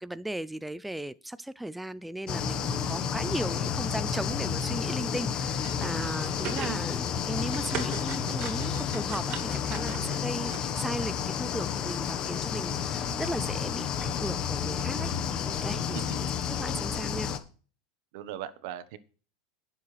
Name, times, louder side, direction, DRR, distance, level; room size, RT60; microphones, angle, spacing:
voice 1, 0.0-15.1 15.4-16.3 16.6-17.3, right 1 dB, 5° right, 0.4 m, -37 dB
sound 1, 2.3-17.4, left 7 dB, 35° left, 1.2 m, -31 dB
sound 2, 5.5-6.8 7.1-10.6, right 8 dB, 50° right, 2.6 m, -40 dB
voice 2, 6.5-6.8 15.9-16.2 18.1-19.0, right 10 dB, 65° right, 1.1 m, -39 dB
19.0 x 7.2 x 3.3 m
supercardioid pair, 135°, 2 cm